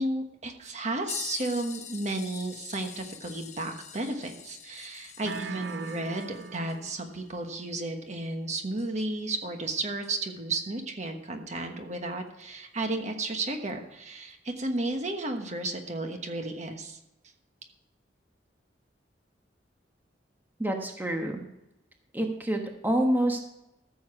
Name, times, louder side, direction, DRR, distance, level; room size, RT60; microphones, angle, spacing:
voice 1, 0.0-17.0, right 2 dB, 40° right, 5 dB, 1.2 m, -33 dB
sound 1, 1.1-9.3 10.0-10.1 12.4-12.5 13.5-13.7 14.8-14.9, left 9 dB, 40° left, 1.0 m, -45 dB
sound 2, 5.2-7.2, right 5 dB, 90° right, 0.5 m, -39 dB
voice 2, 20.6-21.4 22.1-23.4, right 1 dB, 10° right, 3 dB, 1.1 m, -27 dB
14.0 x 7.1 x 4.8 m, 0.90 s
head